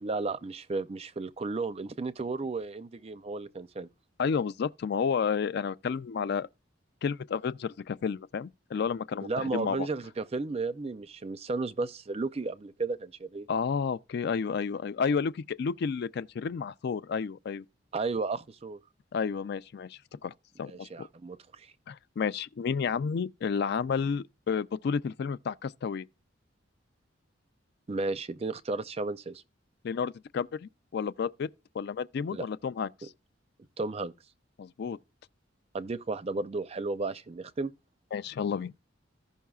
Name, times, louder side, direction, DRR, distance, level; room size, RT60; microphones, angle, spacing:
voice 1, 0.0-3.9 9.2-13.5 17.9-18.8 20.6-21.7 27.9-29.4 32.3-32.5 33.8-34.1 35.7-37.7, right 3 dB, 35° right, 0.5 m, -33 dB
voice 2, 4.2-6.5 7.0-9.9 13.5-17.6 19.1-20.3 20.6-21.1 21.9-26.0 29.8-31.5 31.7-33.1 34.6-35.0 38.1-38.7, left 6 dB, 60° left, 0.3 m, -31 dB
15.0 x 5.5 x 2.3 m
head